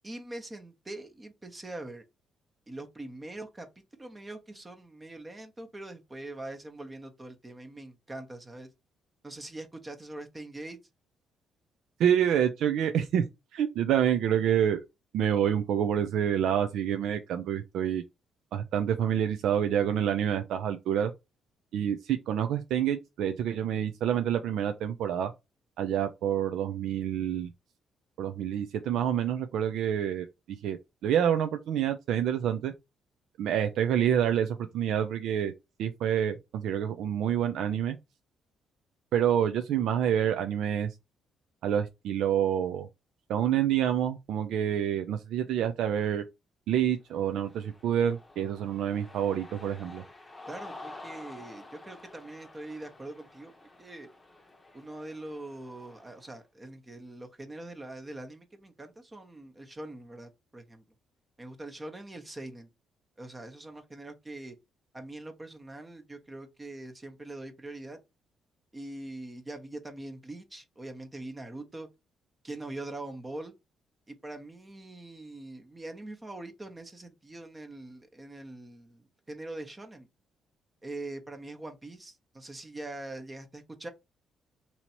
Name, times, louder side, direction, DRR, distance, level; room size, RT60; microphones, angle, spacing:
voice 1, 0.0-2.0 2.7-3.7 3.9-8.7 9.2-10.8 50.5-53.5 53.8-54.1 54.7-60.8 61.4-62.7 63.2-64.6 64.9-68.0 68.7-71.9 72.4-73.5 74.1-80.1 80.8-83.9, right 2 dB, 20° right, 1.0 m, -43 dB
voice 2, 12.0-13.2 13.5-14.9 15.1-18.0 18.5-21.1 21.7-25.3 25.8-27.5 28.2-30.2 30.6-30.8 31.0-32.7 33.4-35.5 35.8-38.0 39.1-41.0 41.6-42.9 43.3-46.2 46.7-50.0, right 9 dB, 80° right, 0.4 m, -27 dB
Cheering, 47.1-56.3, left 2 dB, 20° left, 0.9 m, -50 dB
2.9 x 2.8 x 4.2 m
cardioid pair, 90°, 0 cm